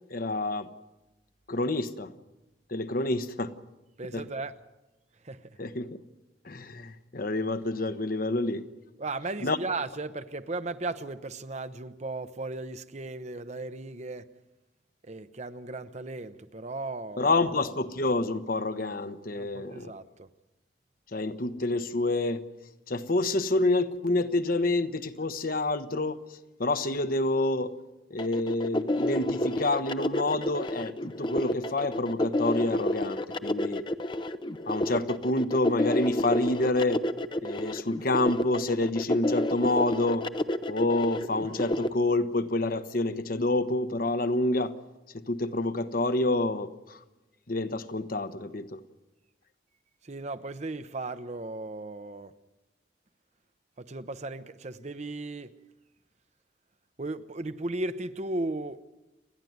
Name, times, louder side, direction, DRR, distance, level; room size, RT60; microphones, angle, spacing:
voice 1, 0.1-0.7 1.5-2.1 2.7-3.5 4.1-4.2 5.6-6.0 6.4-8.7 9.4-9.6 17.2-19.9 21.1-22.4 22.9-26.2 26.6-27.7 28.1-33.8 34.7-37.0 37.4-40.2 40.7-44.7 45.1-47.0 47.5-48.8, left 2 dB, 50° left, 1.0 m, -28 dB
voice 2, 4.0-4.5 5.2-5.6 9.0-14.3 15.0-17.4 19.3-20.3 50.0-52.3 53.8-55.5 57.0-58.8, right 2 dB, 40° right, 0.8 m, -36 dB
sound 1, 28.2-41.9, left 1 dB, 25° left, 0.7 m, -30 dB
29.5 x 10.5 x 9.4 m
head